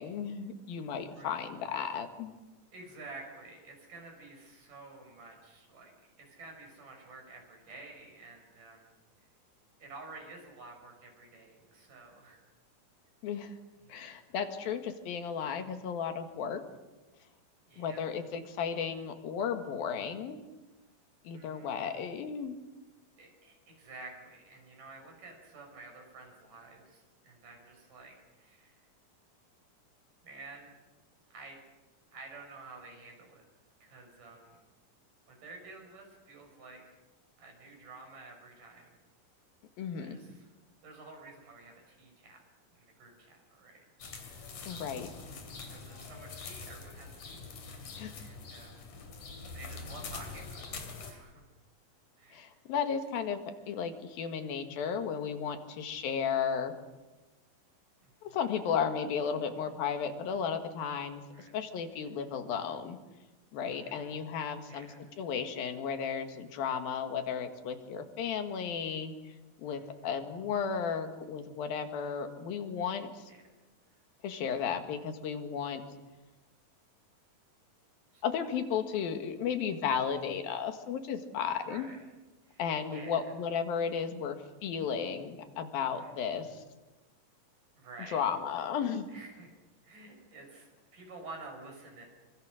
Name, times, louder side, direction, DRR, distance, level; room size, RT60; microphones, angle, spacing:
voice 1, 0.0-2.3 13.2-13.6 13.9-16.6 17.8-20.4 21.3-22.6 39.8-40.2 44.6-45.1 48.0-48.2 52.3-53.4 53.7-56.7 58.2-61.2 61.5-63.0 63.5-64.9 65.2-69.1 69.6-73.2 74.2-75.8 78.2-81.9 82.6-86.6 88.1-89.1, left 7 dB, 85° left, 7 dB, 3.5 m, -34 dB
voice 2, 2.7-8.9 9.8-12.4 13.8-14.2 17.7-18.0 21.3-22.2 23.2-28.8 30.2-30.8 31.3-31.6 32.1-33.4 33.8-34.6 35.3-37.0 37.4-38.9 40.0-40.5 40.8-42.4 42.7-43.9 44.2-44.9 45.6-47.4 47.8-47.9 48.2-48.9 49.5-50.7 51.0-51.4 52.2-52.6 52.9-53.0 58.0-58.4 61.3-61.6 63.6-64.1 64.7-65.0 69.7-70.1 73.3-73.5 78.1-78.2 81.6-82.1 82.4-82.6 82.9-83.3 85.9-86.6 87.8-88.3 89.1-89.6 89.8-92.1, right 3 dB, 65° right, 2 dB, 7.5 m, -51 dB
sound 1, 44.0-51.1, left 4 dB, 60° left, 4.5 m, -44 dB
26.0 x 25.0 x 6.4 m, 1.1 s
omnidirectional pair, 4.1 m